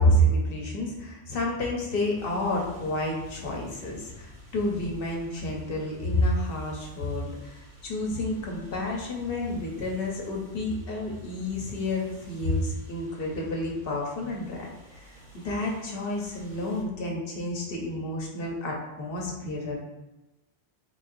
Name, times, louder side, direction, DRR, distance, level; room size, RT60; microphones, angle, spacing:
voice 1, 0.0-14.7 15.4-19.7, left 1 dB, 65° left, -1 dB, 1.0 m, -29 dB
sound 1, 2.2-16.8, equal, 90° right, 1.6 m, -50 dB
4.0 x 3.3 x 2.6 m, 1.0 s
omnidirectional pair, 1.1 m